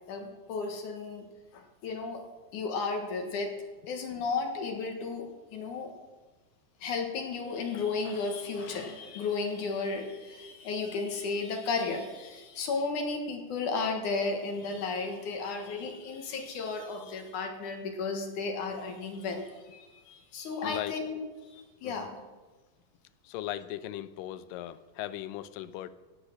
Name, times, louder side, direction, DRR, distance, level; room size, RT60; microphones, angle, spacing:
voice 1, 0.1-1.3 1.5-2.2 2.5-5.9 6.8-22.1, left 4 dB, 65° left, 4 dB, 2.7 m, -34 dB
voice 2, 20.6-21.0 21.8-22.1 23.2-25.9, left 13 dB, 80° left, 13 dB, 2.3 m, -38 dB
16.5 x 8.3 x 6.1 m, 1.2 s
omnidirectional pair, 4.0 m